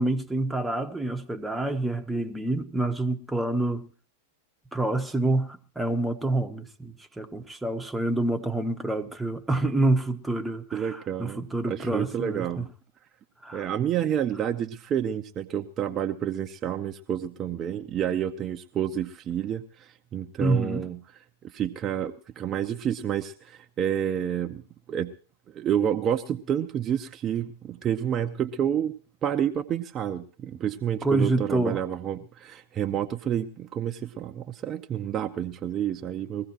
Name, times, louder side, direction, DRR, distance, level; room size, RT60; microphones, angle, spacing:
voice 1, 0.0-3.9 4.7-12.7 13.4-13.7 20.4-20.9 31.0-31.8, right 2 dB, 5° right, 1.1 m, -27 dB
voice 2, 10.7-12.7 13.5-21.0 21.4-24.6 24.9-25.1 25.5-28.9 29.2-36.5, right 9 dB, 30° right, 0.7 m, -29 dB
21.5 x 15.5 x 3.0 m
hypercardioid pair, 100°, 0 cm